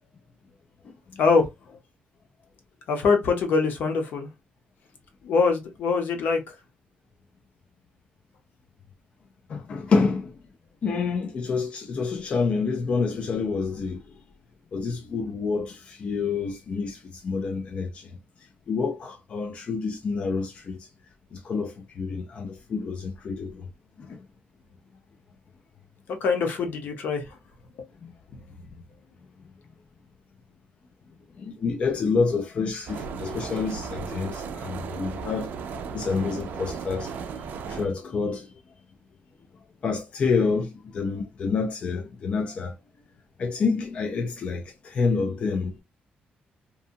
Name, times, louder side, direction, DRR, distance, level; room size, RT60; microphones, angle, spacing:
voice 1, 2.9-4.3 5.2-6.4 26.1-27.2, left 4 dB, 65° left, 0.8 m, -23 dB
voice 2, 9.5-10.4 10.8-14.2 14.7-20.9 21.3-23.7 24.0-24.2 28.0-28.1 31.4-38.5 39.8-42.7 43.4-45.8, left 4 dB, 35° left, 0.3 m, -28 dB
sound 1, 32.9-37.9, right 6 dB, 65° right, 0.4 m, -35 dB
2.7 x 2.2 x 2.6 m
cardioid pair, 160°, 3 cm